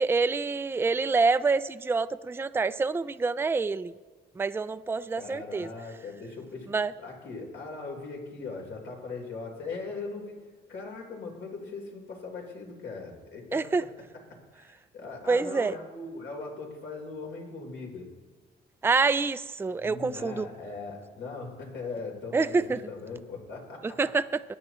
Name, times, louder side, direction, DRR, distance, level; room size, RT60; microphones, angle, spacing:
voice 1, 0.0-3.9 4.4-5.7 6.7-6.9 13.5-13.8 15.3-15.8 18.8-20.5 22.3-22.8 23.8-24.4, right 4 dB, 10° right, 13 dB, 0.4 m, -26 dB
voice 2, 5.1-10.3 10.7-13.7 14.5-18.1 19.8-24.0, left 4 dB, 70° left, 0 dB, 4.0 m, -40 dB
23.0 x 9.8 x 3.1 m, 1.4 s
cardioid pair, 90°, 20 cm